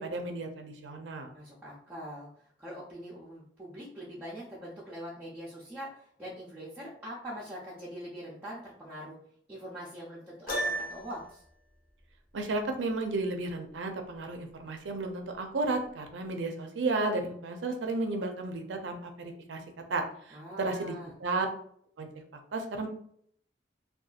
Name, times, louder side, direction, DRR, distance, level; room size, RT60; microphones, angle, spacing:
voice 1, 0.0-1.3 12.3-19.6 19.9-21.5 22.0-22.1 22.5-22.9, right 2 dB, 80° right, 4 dB, 0.5 m, -33 dB
voice 2, 1.3-9.2 9.5-11.4 20.3-21.2, equal, 10° right, -8 dB, 0.5 m, -43 dB
Piano, 10.5-11.3, right 1 dB, 55° left, 0.9 m, -33 dB
2.7 x 2.3 x 2.4 m, 0.64 s
head